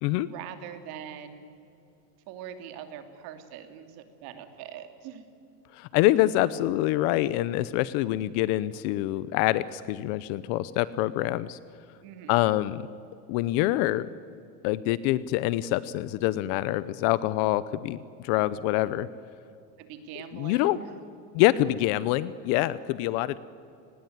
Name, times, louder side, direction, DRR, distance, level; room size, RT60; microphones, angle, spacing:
voice 1, 0.2-1.5 2.3-5.3 12.0-12.4 19.8-20.9, right 9 dB, 50° right, 8 dB, 2.8 m, -42 dB
voice 2, 5.7-11.6 12.3-12.8 13.3-14.1 14.6-19.1 20.3-20.8 21.3-23.4, left 15 dB, 50° left, 17 dB, 0.7 m, -25 dB
30.0 x 20.0 x 9.5 m, 2.5 s
supercardioid pair, 165°, 47 cm